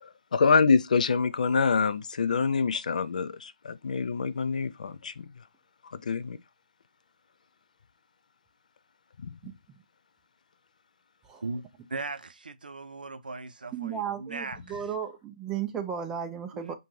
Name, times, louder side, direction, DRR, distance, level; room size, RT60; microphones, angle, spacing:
voice 1, 0.0-5.3 5.9-6.4 9.2-9.3, left 5 dB, 60° left, 0.4 m, -26 dB
voice 2, 9.4-9.8 11.3-11.4 13.7-16.7, right 8 dB, 10° right, 0.4 m, -35 dB
voice 3, 11.4-14.8 16.5-16.7, right 3 dB, 80° right, 0.4 m, -38 dB
2.6 x 2.2 x 3.1 m
figure-of-eight pair, 150°, 5 cm